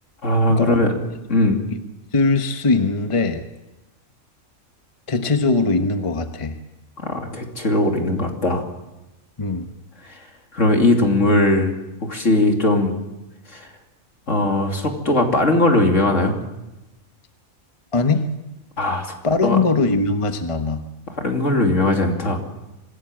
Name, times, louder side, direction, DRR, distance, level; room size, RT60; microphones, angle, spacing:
voice 1, 0.2-0.9 1.3-1.6 7.0-8.6 10.0-10.1 10.5-11.7 12.1-13.0 13.5-13.7 14.3-16.4 18.8-19.1 19.4-19.6 21.1-22.4, left 2 dB, 60° left, 3 dB, 3.2 m, -19 dB
voice 2, 2.1-3.4 5.1-6.6 9.4-9.7 17.9-18.3 19.2-20.9, left 3 dB, 25° left, 7 dB, 1.1 m, -20 dB
25.0 x 16.5 x 7.7 m, 0.99 s
omnidirectional pair, 1.5 m